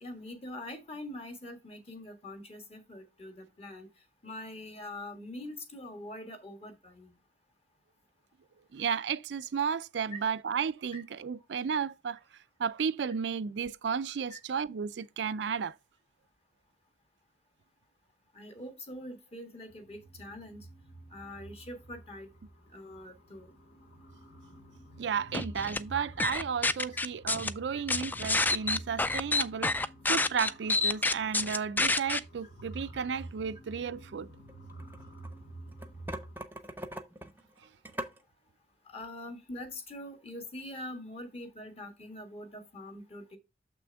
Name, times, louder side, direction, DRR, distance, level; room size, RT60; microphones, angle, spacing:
voice 1, 0.0-3.9 4.2-7.1 10.9-11.0 14.3-14.4 18.3-20.7 21.1-22.3 22.7-23.5 26.9-27.0 27.7-27.8 38.8-43.4, left 1 dB, 35° left, 1.6 m, -44 dB
voice 2, 8.7-12.2 12.6-15.8 25.0-34.3, right 6 dB, 80° right, 0.4 m, -33 dB
sound 1, 19.7-36.4, right 2 dB, 90° left, 1.5 m, -49 dB
sound 2, 25.3-25.8 26.2-27.5 27.9-32.2, left 3 dB, 10° left, 0.3 m, -28 dB
sound 3, 34.5-35.4 35.7-38.2, right 1 dB, 10° right, 0.8 m, -41 dB
6.9 x 6.0 x 3.4 m
head